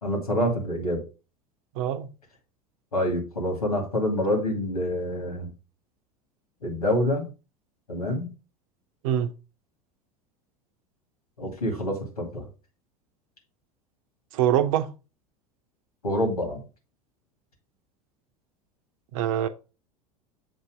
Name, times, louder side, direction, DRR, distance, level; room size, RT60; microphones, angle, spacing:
voice 1, 0.0-1.0 2.9-5.5 6.6-7.3 7.9-8.3 11.4-12.5 16.0-16.6, left 1 dB, 90° left, 2.4 m, -26 dB
voice 2, 1.8-2.1 9.0-9.3 14.3-14.9 19.1-19.5, right 10 dB, 65° right, 0.7 m, -24 dB
7.5 x 2.9 x 4.9 m
hypercardioid pair, 80°, 19 cm